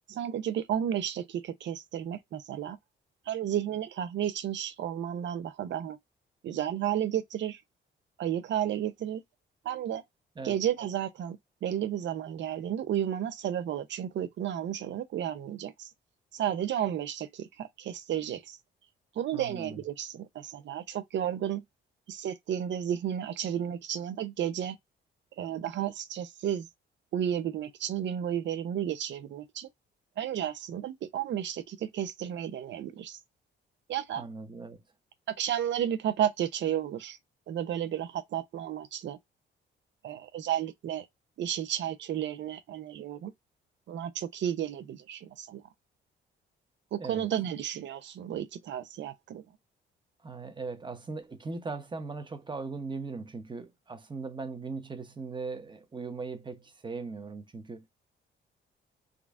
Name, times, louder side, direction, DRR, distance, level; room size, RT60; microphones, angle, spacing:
voice 1, 0.1-2.8 3.3-6.0 6.4-7.6 8.2-9.2 9.6-10.0 10.4-15.9 16.3-18.6 19.2-21.6 22.1-24.8 25.4-26.7 27.1-29.7 30.2-33.2 33.9-34.2 35.3-37.2 37.5-39.2 40.0-41.1 41.4-43.3 43.9-45.6 46.9-49.4, right 10 dB, 65° right, 0.7 m, -32 dB
voice 2, 19.3-19.8 34.2-34.8 47.0-47.3 50.2-57.9, right 4 dB, 25° right, 0.9 m, -39 dB
3.8 x 2.2 x 3.5 m
cardioid pair, 90°, 20 cm